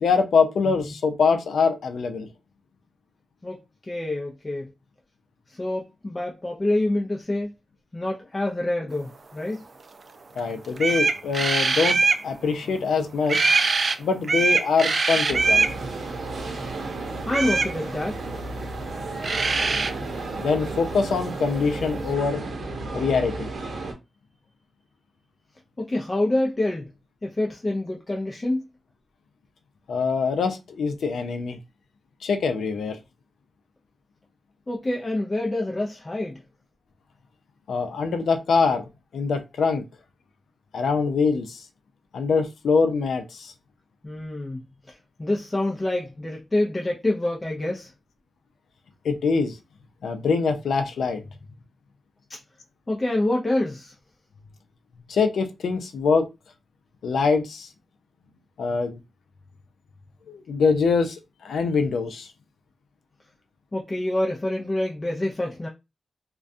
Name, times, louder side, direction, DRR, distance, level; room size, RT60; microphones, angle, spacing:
voice 1, 0.0-2.3 10.4-13.5 14.0-15.7 20.4-23.5 29.9-31.6 32.2-33.0 37.7-38.8 39.1-39.8 40.7-41.6 42.1-43.5 49.0-49.6 50.0-51.2 55.1-56.3 57.0-57.7 58.6-59.0 60.3-62.3, left 5 dB, 90° left, 0.4 m, -24 dB
voice 2, 3.9-4.7 5.5-7.5 7.9-9.6 16.4-16.6 17.2-18.2 25.8-26.9 27.2-28.6 34.7-36.4 44.0-44.6 44.9-47.9 52.3-52.4 52.9-54.0 63.7-65.7, left 1 dB, 25° left, 0.5 m, -27 dB
sound 1, 10.4-10.5 10.8-12.2 13.3-14.0 14.2-15.7 17.3-17.7 18.9-19.0 19.2-19.9, right 4 dB, 50° right, 0.3 m, -22 dB
sound 2, 15.3-23.9, right 2 dB, 75° right, 0.7 m, -33 dB
2.3 x 2.2 x 2.5 m
cardioid pair, 75°, 0 cm